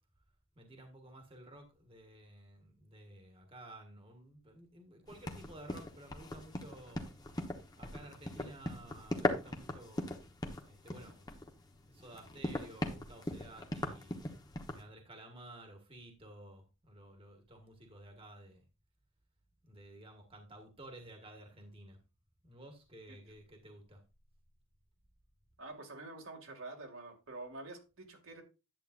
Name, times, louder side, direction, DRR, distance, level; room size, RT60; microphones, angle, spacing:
voice 1, 0.5-7.1 7.7-10.3 10.6-11.4 11.9-14.2 14.7-18.6 19.6-22.0 22.4-24.0, right 1 dB, 25° right, 1.6 m, -53 dB
sound 1, 5.1-14.8, left 1 dB, 20° left, 1.1 m, -39 dB
voice 2, 25.6-28.4, right 2 dB, 75° right, 2.3 m, -47 dB
11.0 x 8.4 x 2.5 m
head